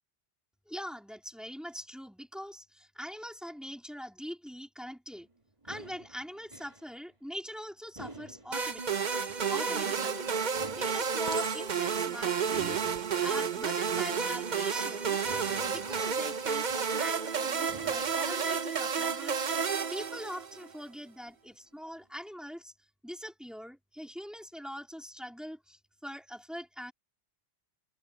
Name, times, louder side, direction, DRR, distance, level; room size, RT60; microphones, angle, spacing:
voice 1, 0.7-5.3 5.6-8.8 9.5-12.8 13.2-15.2 15.6-19.5 19.9-22.7 23.0-26.9, equal, ahead, 2.0 m, -43 dB
sound 1, 5.2-7.0 7.2-7.3 8.0-10.0 10.5-11.9 12.4-14.4 14.7-14.8 15.1-17.2 17.7-18.7 19.0-19.1 19.5-19.7 20.0-21.1, right 2 dB, 25° right, 2.0 m, -51 dB
sound 2, 8.5-20.7, right 6 dB, 45° right, 0.9 m, -31 dB
Chink clink, 9.8-10.3 11.3-12.1 12.8-13.1, right 4 dB, 65° right, 1.2 m, -43 dB
omnidirectional pair, 1.2 m